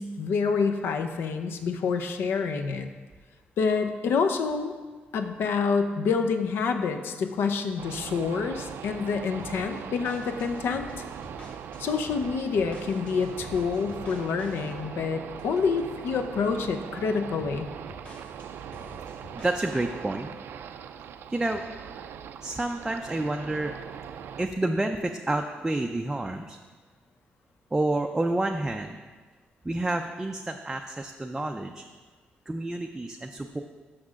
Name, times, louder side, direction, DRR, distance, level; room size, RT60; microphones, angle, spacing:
voice 1, 0.0-2.9 3.6-4.7 5.1-10.9 11.8-17.7, left 5 dB, 80° left, 6 dB, 0.7 m, -27 dB
sound 1, 7.8-24.5, right 8 dB, 75° right, 0.4 m, -40 dB
sound 2, 9.4-16.3 16.7-17.0 17.4-20.0, left 1 dB, 30° left, 1.0 m, -49 dB
voice 2, 19.3-20.3 21.3-21.6 22.4-23.7 24.4-26.6 27.7-29.0 29.6-31.8 32.5-33.6, right 2 dB, 10° right, 3 dB, 0.4 m, -29 dB
6.2 x 6.0 x 6.3 m, 1.4 s
cardioid pair, 125°, 4 cm